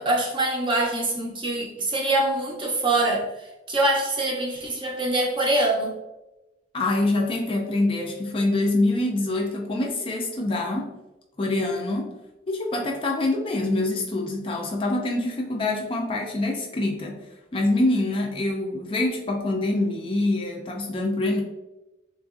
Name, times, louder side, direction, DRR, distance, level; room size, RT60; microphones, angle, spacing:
voice 1, 0.0-5.9, right 2 dB, 25° right, -1 dB, 0.6 m, -24 dB
voice 2, 6.7-10.9 11.4-12.1 12.5-17.2 17.5-21.4, left 2 dB, 30° left, 0 dB, 0.4 m, -25 dB
3.7 x 2.5 x 2.4 m, 0.99 s
head